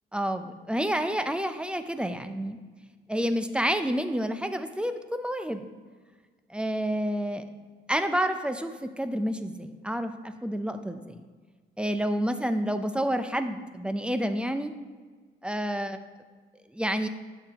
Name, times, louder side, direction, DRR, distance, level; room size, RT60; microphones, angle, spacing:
voice 1, 0.1-2.6 3.1-5.6 6.5-7.4 7.9-11.2 11.8-14.7 15.4-16.0 16.7-17.1, equal, 5° right, 9 dB, 0.6 m, -29 dB
12.5 x 6.5 x 3.0 m, 1.5 s
cardioid pair, 90°, 20 cm